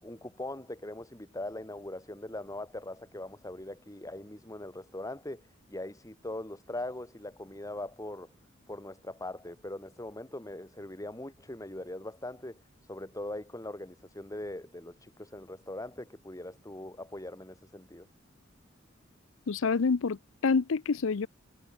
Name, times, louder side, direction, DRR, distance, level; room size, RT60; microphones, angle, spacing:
voice 1, 0.0-8.3 8.7-12.6 12.9-18.1, left 1 dB, 15° left, 2.5 m, -41 dB
voice 2, 19.5-21.3, left 4 dB, 70° left, 0.6 m, -27 dB
head